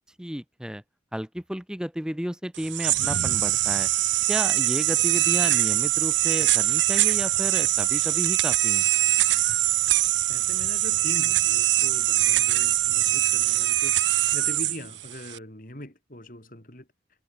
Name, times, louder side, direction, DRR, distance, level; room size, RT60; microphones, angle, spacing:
voice 1, 0.2-0.8 1.1-3.9 4.3-8.8, equal, 5° right, 0.9 m, -32 dB
sound 1, 2.5-15.4, right 15 dB, 85° right, 0.7 m, -23 dB
voice 2, 10.3-14.0 14.3-16.9, left 1 dB, 50° left, 5.7 m, -41 dB
head